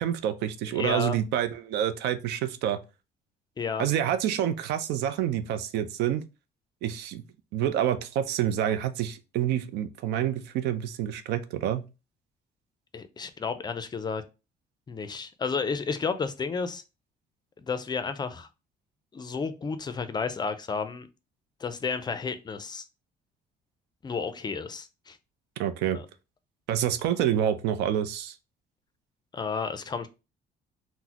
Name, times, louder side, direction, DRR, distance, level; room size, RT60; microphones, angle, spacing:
voice 1, 0.0-2.8 3.8-6.2 6.8-7.2 7.5-11.8 25.6-26.0 26.7-28.4, right 10 dB, 85° right, 0.5 m, -27 dB
voice 2, 0.7-1.2 3.6-3.9 12.9-14.2 14.9-16.8 17.6-18.5 19.1-21.1 21.6-22.9 24.0-25.2 25.9-26.0 29.3-30.1, left 5 dB, 25° left, 0.4 m, -32 dB
3.9 x 2.0 x 2.8 m
cardioid pair, 110°, 17 cm